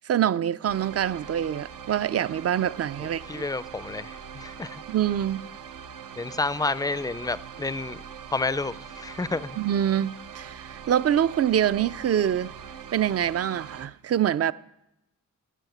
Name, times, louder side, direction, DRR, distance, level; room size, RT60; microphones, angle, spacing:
voice 1, 0.0-3.4 4.9-5.4 9.6-12.5 12.9-14.5, right 10 dB, 50° right, 0.4 m, -25 dB
sound 1, 0.7-13.9, right 7 dB, 85° right, 0.7 m, -42 dB
voice 2, 3.0-4.8 6.2-8.0 8.3-9.6, left 3 dB, 10° left, 0.4 m, -30 dB
12.0 x 9.0 x 7.9 m
wide cardioid pair, 90°, 31 cm